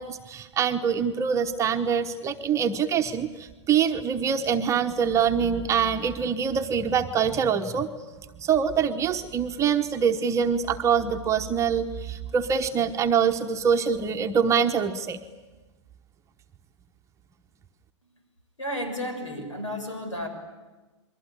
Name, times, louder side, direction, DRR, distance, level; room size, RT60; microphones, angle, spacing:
voice 1, 0.0-7.9 8.4-15.2, right 7 dB, 20° right, 4 dB, 1.0 m, -24 dB
voice 2, 18.6-20.3, equal, 85° left, 6 dB, 6.3 m, -32 dB
28.5 x 22.5 x 8.9 m, 1.2 s
hypercardioid pair, 115°, 16 cm